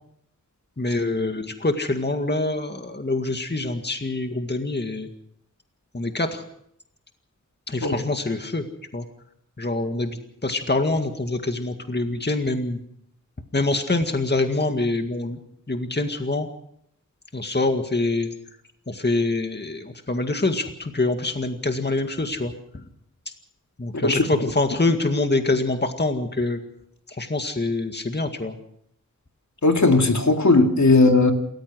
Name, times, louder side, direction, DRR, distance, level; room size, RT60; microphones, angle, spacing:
voice 1, 0.8-5.1 5.9-6.4 7.7-8.7 8.9-9.0 9.6-10.1 10.4-12.8 13.5-15.4 15.7-16.5 17.3-18.3 18.9-22.5 23.8-26.6 27.2-28.6, left 2 dB, 35° left, 5 dB, 2.0 m, -25 dB
voice 2, 29.6-31.3, left 3 dB, 65° left, 4 dB, 2.5 m, -17 dB
27.5 x 15.0 x 6.3 m, 0.70 s
wide cardioid pair, 60°, 31 cm